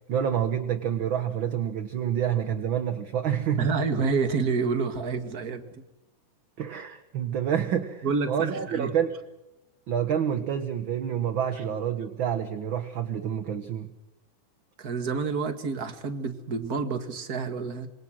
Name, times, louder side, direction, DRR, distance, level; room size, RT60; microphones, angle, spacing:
voice 1, 0.1-3.7 6.6-9.2 9.9-13.9, right 9 dB, 50° right, 9 dB, 1.6 m, -28 dB
voice 2, 3.6-5.8 8.0-8.9 14.8-17.9, right 4 dB, 35° right, 8 dB, 2.1 m, -28 dB
26.5 x 26.0 x 6.4 m, 0.97 s
omnidirectional pair, 3.6 m